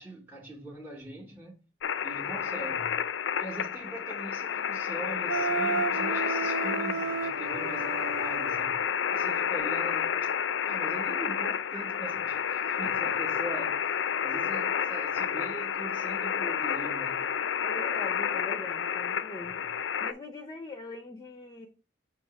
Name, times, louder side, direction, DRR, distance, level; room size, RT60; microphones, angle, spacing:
voice 1, 0.0-1.6 2.0-3.0 3.4-8.8 9.1-10.3 10.6-13.9 14.2-17.3 19.4-19.6, right 1 dB, 10° right, 1.0 m, -42 dB
sound 1, 1.8-20.1, left 8 dB, 75° left, 0.4 m, -30 dB
voice 2, 2.3-2.6 12.8-13.3 17.6-19.7 20.0-21.7, left 2 dB, 20° left, 0.6 m, -42 dB
Wind instrument woodwind instrument, 5.3-8.5, right 5 dB, 90° right, 0.6 m, -32 dB
5.9 x 2.9 x 5.6 m
head